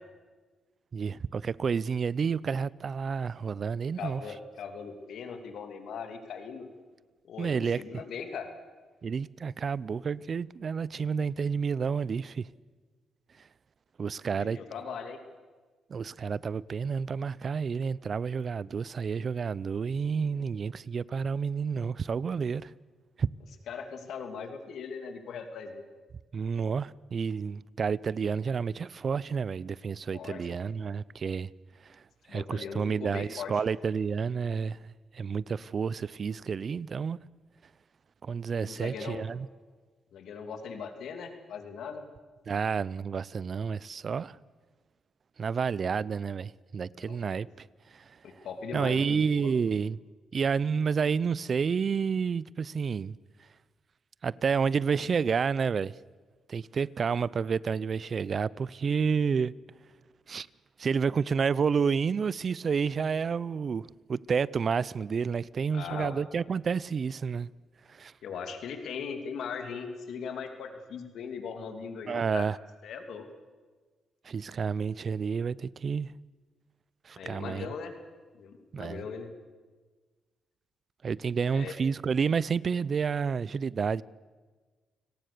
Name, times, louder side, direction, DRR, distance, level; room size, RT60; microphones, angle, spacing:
voice 1, 0.9-4.2 7.4-8.0 9.0-12.5 14.0-14.6 15.9-22.7 23.2-23.3 26.3-31.5 31.8-32.0 32.3-37.2 38.2-39.5 42.5-44.4 45.4-47.7 47.9-48.0 48.7-50.0 50.3-53.2 54.2-55.9 56.5-59.5 60.3-60.5 60.8-67.5 67.9-68.1 72.1-72.6 74.2-76.1 77.1-77.7 78.7-79.0 81.0-84.0, right 6 dB, 50° right, 0.6 m, -30 dB
voice 2, 4.0-6.7 7.2-8.5 14.4-15.2 20.4-20.5 23.7-25.9 30.1-30.6 32.3-33.6 38.6-39.3 40.1-42.0 46.9-47.5 48.2-49.5 65.7-66.2 68.2-72.5 72.8-73.3 77.2-77.9 78.4-79.3 81.5-81.8, left 6 dB, 75° left, 2.7 m, -39 dB
29.5 x 18.5 x 6.8 m
cardioid pair, 70°, 0 cm